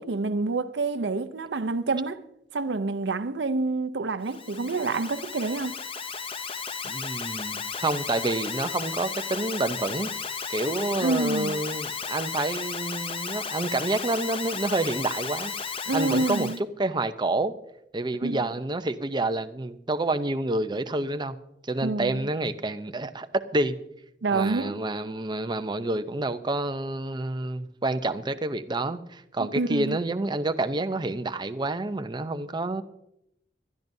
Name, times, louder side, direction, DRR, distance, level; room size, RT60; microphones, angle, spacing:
voice 1, 0.0-2.2 2.5-5.8 11.0-11.6 15.9-16.6 18.2-18.5 21.8-22.3 24.2-24.8 29.4-30.0, right 3 dB, 80° right, 0.7 m, -27 dB
Alarm, 4.2-16.6, left 5 dB, 30° left, 0.7 m, -34 dB
voice 2, 6.8-10.1 10.5-16.5 16.8-17.5 17.9-21.4 21.7-23.7 24.3-32.8, right 2 dB, 25° right, 0.6 m, -28 dB
25.5 x 12.0 x 2.7 m
head